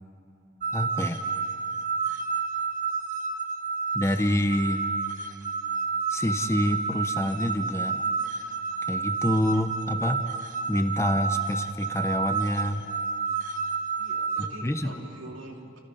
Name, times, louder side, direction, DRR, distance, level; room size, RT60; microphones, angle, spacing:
sound 1, 0.6-14.5, right 5 dB, 40° right, 1.4 m, -30 dB
voice 1, 0.7-1.2 3.9-4.8 6.1-8.0 8.9-10.2 10.7-12.8 14.4-15.1, left 1 dB, 15° left, 7 dB, 0.9 m, -27 dB
voice 2, 14.0-15.8, right 1 dB, 75° right, 2 dB, 2.7 m, -44 dB
29.5 x 27.0 x 5.7 m, 2.6 s
head